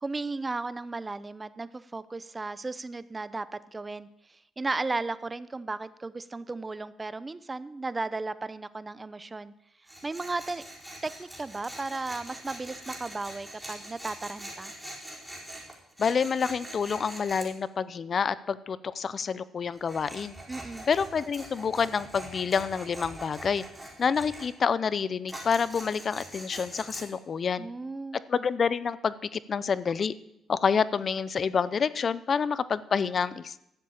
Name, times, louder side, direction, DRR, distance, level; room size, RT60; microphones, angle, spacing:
voice 1, 0.0-4.1 4.6-9.5 10.0-10.6 11.0-14.7 20.5-20.9 27.6-28.2, right 3 dB, 25° right, 16 dB, 0.7 m, -35 dB
Tools, 9.9-17.5 19.7-24.5 25.3-27.0, right 1 dB, 5° right, 4.6 m, -43 dB
voice 2, 16.0-20.4 20.9-23.6 24.0-27.7 28.3-30.1 30.5-33.6, left 6 dB, 45° left, 17 dB, 0.6 m, -28 dB
12.5 x 7.4 x 8.6 m, 0.81 s
cardioid pair, 90°, 0 cm